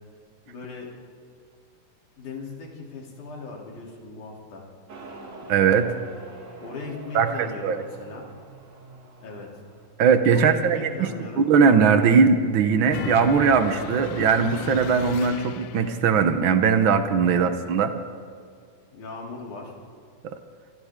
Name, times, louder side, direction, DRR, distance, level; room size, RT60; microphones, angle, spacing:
voice 1, 0.5-0.9 2.2-4.6 6.6-8.3 9.2-9.5 10.3-11.4 17.2-17.4 18.9-19.7, left 3 dB, 70° left, -2 dB, 4.5 m, -38 dB
Motorcycle, 4.9-9.9, right 2 dB, 35° right, 2.5 m, -45 dB
voice 2, 5.5-5.9 7.1-7.8 10.0-11.1 11.4-17.9, right 6 dB, 80° right, 8 dB, 1.1 m, -20 dB
sound 1, 12.9-16.1, left 12 dB, 90° left, 1.4 m, -36 dB
27.5 x 26.5 x 3.7 m, 2.2 s
omnidirectional pair, 3.6 m